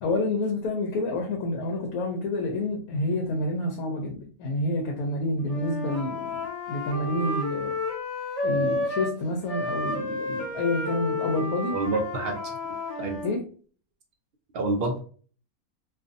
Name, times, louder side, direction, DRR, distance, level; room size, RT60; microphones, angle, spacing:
voice 1, 0.0-7.7 8.4-11.8 13.2-13.5, left 2 dB, 80° left, 1 dB, 1.0 m, -28 dB
Wind instrument woodwind instrument, 5.4-9.2 9.5-13.3, left 2 dB, 35° left, 0.7 m, -31 dB
voice 2, 11.7-12.5 13.0-13.2 14.5-15.0, right 2 dB, 70° right, 3 dB, 0.5 m, -28 dB
2.5 x 2.4 x 2.5 m, 0.41 s
omnidirectional pair, 1.5 m